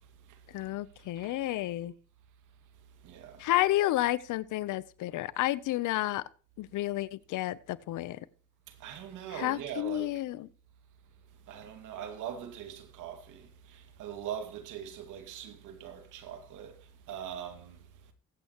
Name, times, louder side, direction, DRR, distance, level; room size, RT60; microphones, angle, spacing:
voice 1, 0.5-1.9 3.4-6.3 6.6-8.2 9.3-10.5, left 15 dB, 85° left, 0.8 m, -31 dB
voice 2, 3.0-3.4 8.7-10.1 11.5-17.8, right 9 dB, 90° right, 2.2 m, -42 dB
21.0 x 8.6 x 3.0 m
cardioid pair, 90°, 30 cm